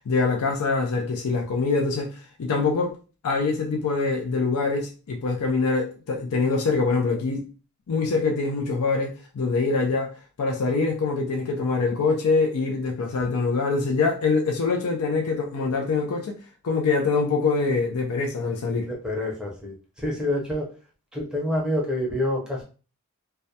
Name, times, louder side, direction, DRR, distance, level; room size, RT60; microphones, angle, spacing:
voice 1, 0.1-3.0 3.2-7.5 7.9-10.1 10.4-16.4 16.6-18.9, left 4 dB, 85° left, 0.4 m, -24 dB
voice 2, 18.8-20.7 21.1-22.6, left 1 dB, 5° right, 0.5 m, -27 dB
2.3 x 2.0 x 2.7 m
head